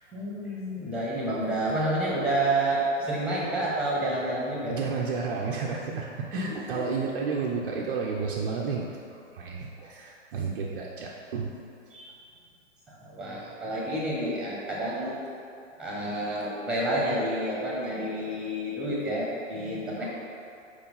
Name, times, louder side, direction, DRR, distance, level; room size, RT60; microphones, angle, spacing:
voice 1, 0.1-4.8 6.3-7.0 11.9-12.2 12.9-15.2 15.8-20.0, right 1 dB, 5° right, -5 dB, 1.3 m, -29 dB
voice 2, 4.7-8.8 9.1-11.5, right 5 dB, 45° right, -2 dB, 0.6 m, -31 dB
4.9 x 4.5 x 5.4 m, 2.6 s
figure-of-eight pair, 120°, 38 cm